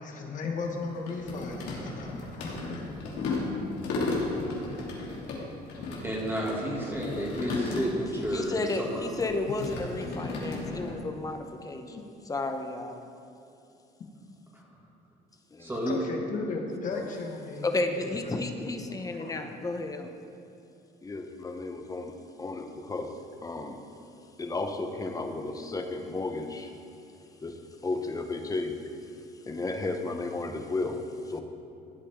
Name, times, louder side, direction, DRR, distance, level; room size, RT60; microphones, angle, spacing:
voice 1, 0.0-2.9 11.9-12.0 15.9-18.4 18.9-19.6, left 3 dB, 50° left, 2 dB, 1.6 m, -37 dB
sound 1, 0.6-8.3 8.6-10.9, left 3 dB, 80° left, 2.6 m, -34 dB
voice 2, 6.0-9.0 15.6-16.0, equal, 15° right, -4 dB, 2.4 m, -31 dB
voice 3, 8.3-12.0 12.3-13.1 15.5-15.7 16.9-17.1 17.6-20.1 21.0-23.1 23.4-23.8 24.4-26.7 27.4-27.6 27.8-28.8 29.4-31.4, left 2 dB, 20° left, 6 dB, 0.9 m, -33 dB
15.0 x 8.4 x 3.7 m, 2.7 s
cardioid pair, 110°, 17 cm